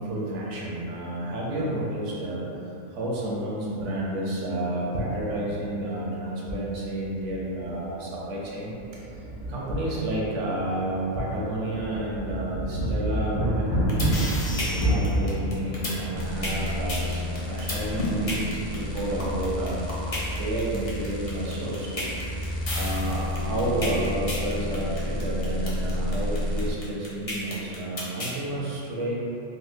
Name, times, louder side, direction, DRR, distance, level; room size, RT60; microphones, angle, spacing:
voice 1, 0.0-2.4 2.9-13.7 14.8-19.8 20.3-21.9 22.8-29.2, right 1 dB, 75° right, -5 dB, 1.0 m, -30 dB
sound 1, 7.3-7.4 7.8-7.9 8.8-10.2 10.6-10.7 11.2-16.0, right 1 dB, 70° left, 1.3 m, -28 dB
sound 2, 13.7-28.4, left 1 dB, 40° left, 0.6 m, -32 dB
sound 3, 16.1-26.7, left 1 dB, 40° right, 0.5 m, -31 dB
4.1 x 2.2 x 2.6 m, 2.9 s
omnidirectional pair, 1.3 m